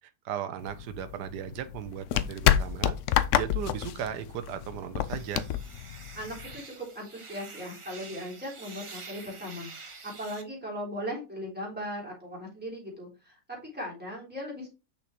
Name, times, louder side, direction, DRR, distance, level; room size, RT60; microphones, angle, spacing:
voice 1, 0.0-3.0 3.3-5.5, right 9 dB, 80° right, 1.3 m, -36 dB
sound 1, 0.6-6.6, left 11 dB, 70° left, 0.7 m, -28 dB
sound 2, 5.1-10.4, right 4 dB, 35° right, 0.5 m, -47 dB
voice 2, 6.1-14.7, equal, 5° right, 3.4 m, -38 dB
6.7 x 5.9 x 3.0 m
omnidirectional pair, 1.8 m